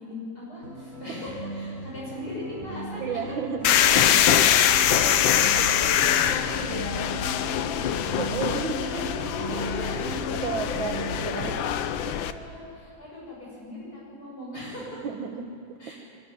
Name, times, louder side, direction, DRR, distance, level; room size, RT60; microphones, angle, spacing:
voice 1, 0.0-3.2 4.8-8.0 8.5-15.0 15.8-15.9, left 1 dB, 55° left, -6 dB, 7.0 m, -39 dB
sound 1, 0.6-11.2, right 1 dB, 50° right, 4.3 m, -37 dB
voice 2, 3.0-4.2 8.2-8.8 10.3-11.6 12.1-12.2 15.0-15.9, right 6 dB, 90° right, 7 dB, 2.1 m, -33 dB
sound 2, 3.6-12.3, left 10 dB, 85° left, 1.5 m, -23 dB
23.5 x 13.0 x 9.6 m, 2.5 s
omnidirectional pair, 2.1 m